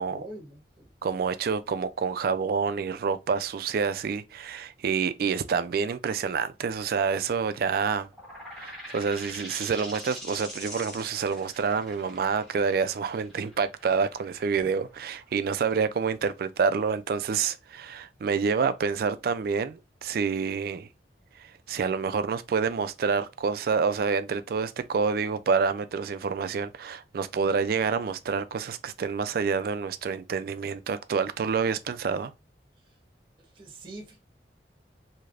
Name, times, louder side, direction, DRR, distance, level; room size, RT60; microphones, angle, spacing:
voice 1, 0.1-0.9 14.5-14.7 33.5-34.2, right 1 dB, 30° right, 0.8 m, -44 dB
voice 2, 1.0-8.1 8.6-20.9 21.7-32.3, right 5 dB, 55° right, 0.3 m, -28 dB
sound 1, 8.1-15.5, equal, 5° left, 1.2 m, -43 dB
3.2 x 2.7 x 2.4 m
head